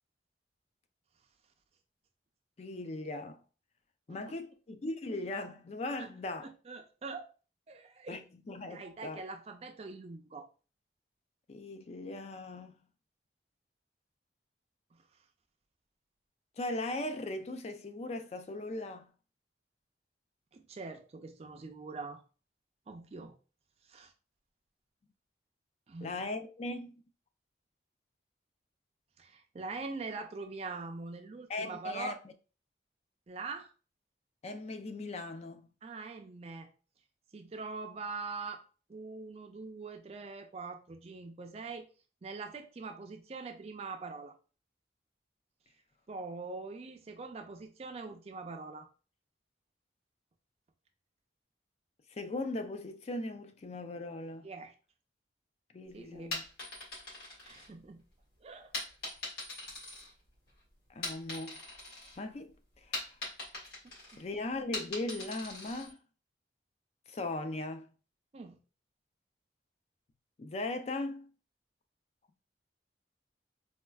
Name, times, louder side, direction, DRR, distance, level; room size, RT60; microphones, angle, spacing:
voice 1, 2.6-3.4 4.1-6.5 8.1-9.2 11.5-12.7 16.6-19.1 26.0-26.9 31.5-32.2 34.4-35.6 52.1-54.5 55.7-56.4 60.9-61.6 62.2-62.5 62.8-63.1 64.2-66.0 67.1-67.9 70.4-71.3, left 2 dB, 35° left, 0.4 m, -38 dB
voice 2, 6.4-7.3 7.7-8.2 8.7-10.5 14.9-15.0 20.5-22.2 22.9-23.4 23.9-24.1 25.9-26.1 29.2-32.2 33.3-33.7 35.8-36.7 37.3-38.6 38.9-41.9 42.2-44.3 46.1-48.9 54.4-54.7 55.9-56.3 57.4-58.0 58.4-58.7 64.1-64.2 68.3-68.6, right 4 dB, 35° right, 0.4 m, -43 dB
sound 1, 56.1-58.1 58.7-60.5 60.9-62.2 62.5-65.9, left 2 dB, 60° left, 1.8 m, -41 dB
4.3 x 2.3 x 2.3 m
head